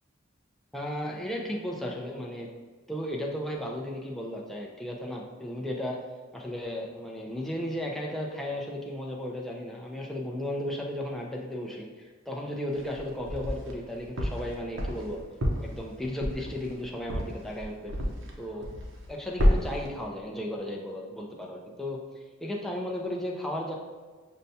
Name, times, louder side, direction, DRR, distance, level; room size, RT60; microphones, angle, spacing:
voice 1, 0.7-2.5 2.9-6.0 6.3-15.2 15.6-17.9 18.4-18.7 19.1-23.7, left 1 dB, ahead, -2 dB, 0.4 m, -35 dB
sound 1, 12.7-13.8 14.2-18.4 18.6-19.1 19.4-19.9, equal, 65° right, 0.7 m, -28 dB
6.5 x 2.2 x 2.7 m, 1.4 s
head